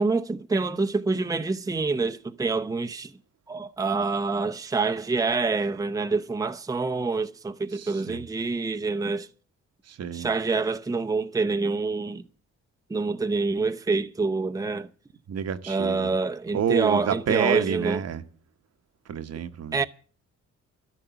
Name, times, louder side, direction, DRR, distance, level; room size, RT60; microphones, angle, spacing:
voice 1, 0.0-3.1 3.5-9.3 10.1-12.2 12.9-14.9 15.7-18.0 19.7-19.8, right 3 dB, 10° right, 0.7 m, -26 dB
voice 2, 7.7-8.3 9.8-10.3 15.3-16.1 16.5-18.2 19.1-19.8, right 8 dB, 55° right, 1.0 m, -28 dB
12.5 x 11.0 x 6.9 m
cardioid pair, 90°, 30 cm